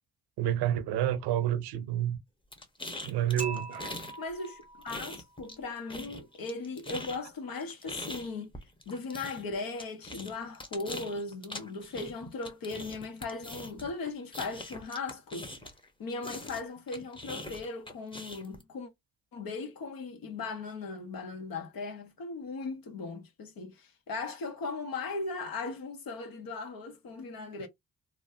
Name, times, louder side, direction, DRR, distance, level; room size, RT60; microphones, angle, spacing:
voice 1, 0.4-2.2 3.0-3.9, right 11 dB, 80° right, 0.7 m, -29 dB
sound 1, 2.5-4.2 4.4-5.6 5.9-15.9 16.2-18.6, left 1 dB, 15° left, 1.1 m, -42 dB
Dishes pots and pans / Chink clink, 3.4-5.5, right 4 dB, 20° right, 0.3 m, -43 dB
voice 2, 4.2-8.5 8.9-15.5 16.0-18.9 19.3-27.7, left 3 dB, 60° left, 1.1 m, -38 dB
3.0 x 2.3 x 2.6 m
hypercardioid pair, 45°, 39 cm